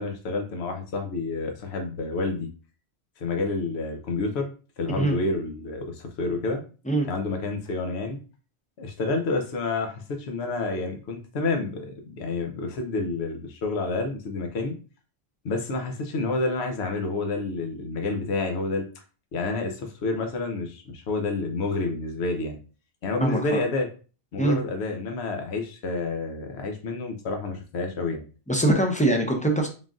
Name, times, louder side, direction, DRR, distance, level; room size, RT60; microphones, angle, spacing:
voice 1, 0.0-2.5 3.2-4.5 4.8-6.6 7.1-8.2 8.8-14.7 15.4-18.9 19.3-22.6 23.0-23.9 24.3-28.2, left 3 dB, 75° left, 4 dB, 1.0 m, -29 dB
voice 2, 23.2-23.6 24.4-24.6 28.5-29.7, right 1 dB, 10° left, 2 dB, 0.4 m, -23 dB
3.8 x 3.7 x 2.4 m, 0.36 s
omnidirectional pair, 1.1 m